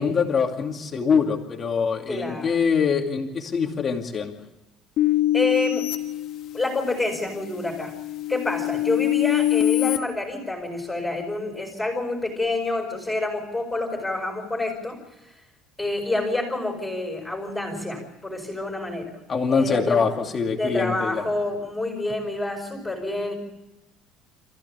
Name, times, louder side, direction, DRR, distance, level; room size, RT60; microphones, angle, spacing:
voice 1, 0.0-4.3 19.3-21.2, left 5 dB, 20° left, 3 dB, 2.6 m, -24 dB
voice 2, 2.1-2.6 5.3-5.9 6.5-7.9 8.3-15.4 15.8-19.2 19.5-20.2 20.5-23.3, left 2 dB, 5° left, 2 dB, 4.8 m, -28 dB
sound 1, 5.0-6.9 7.4-10.0, left 14 dB, 45° left, 1.2 m, -24 dB
27.5 x 15.0 x 8.6 m, 1.0 s
cardioid pair, 180°, 0 cm